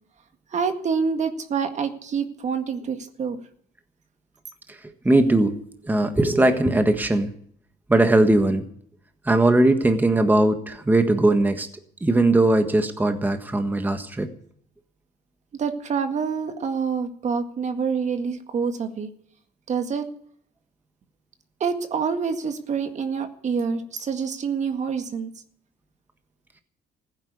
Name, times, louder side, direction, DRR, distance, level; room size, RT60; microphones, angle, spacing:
voice 1, 0.5-3.4 15.5-19.1 19.7-20.1 21.6-25.3, right 6 dB, 45° right, 7 dB, 1.9 m, -27 dB
voice 2, 4.7-5.6 5.8-7.3 7.9-8.6 9.2-11.7 12.0-14.3, right 2 dB, 10° right, 7 dB, 1.5 m, -19 dB
15.5 x 9.9 x 8.3 m, 0.62 s
cardioid pair, 110°, 17 cm